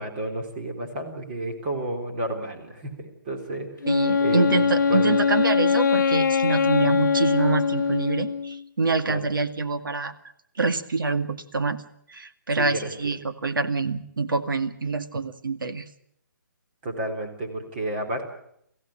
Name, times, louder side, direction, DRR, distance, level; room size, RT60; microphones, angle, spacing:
voice 1, 0.0-3.9 4.2-5.2 6.9-7.0 9.1-9.3 12.6-12.9 16.8-18.3, right 1 dB, 30° right, 3 dB, 3.8 m, -31 dB
Wind instrument woodwind instrument, 3.8-8.6, left 6 dB, 65° left, 0.9 m, -22 dB
voice 2, 3.9-10.1 10.6-11.8 12.1-15.9, right 3 dB, 90° right, 8 dB, 2.1 m, -26 dB
24.0 x 16.0 x 8.7 m, 0.72 s
hypercardioid pair, 165°, 11 cm